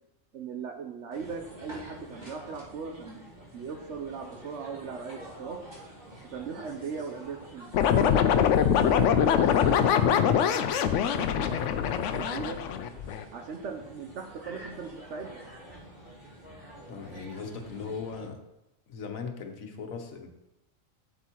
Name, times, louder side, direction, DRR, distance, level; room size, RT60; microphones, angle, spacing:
voice 1, 0.3-3.2 3.5-5.6 6.3-8.0 8.8-12.6 13.3-15.4, right 5 dB, 65° right, 4 dB, 0.9 m, -39 dB
sound 1, 1.1-18.3, equal, 35° right, 1.9 m, -47 dB
sound 2, 7.7-13.2, left 8 dB, 70° left, 0.9 m, -23 dB
voice 2, 16.9-18.4 18.9-20.3, left 5 dB, 85° left, 4 dB, 1.4 m, -38 dB
8.2 x 8.1 x 2.9 m, 0.94 s
omnidirectional pair, 1.4 m